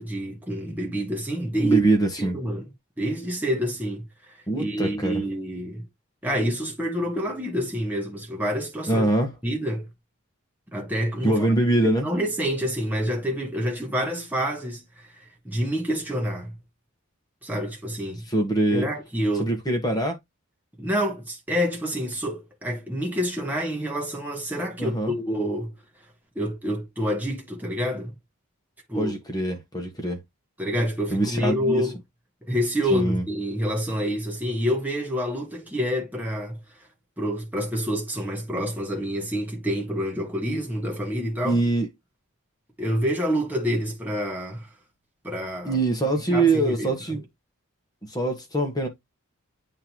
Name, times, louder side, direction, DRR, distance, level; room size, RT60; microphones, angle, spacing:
voice 1, 0.0-1.8 2.2-2.7 3.0-4.0 4.6-5.8 6.2-9.1 9.4-9.9 10.7-11.5 11.8-16.6 17.4-18.2 18.7-19.5 20.8-25.7 26.3-28.1 28.9-29.1 30.6-31.9 32.5-36.6 37.2-41.6 42.8-44.7 45.2-45.8 46.3-47.2, equal, 10° right, 1.6 m, -27 dB
voice 2, 1.6-2.4 4.5-5.2 8.9-9.3 11.2-12.1 18.3-18.9 19.4-20.2 24.8-25.1 28.9-30.2 31.1-31.8 32.9-33.2 41.4-41.9 45.6-47.2 48.1-48.9, right 2 dB, 15° left, 1.3 m, -23 dB
8.8 x 3.8 x 3.0 m
head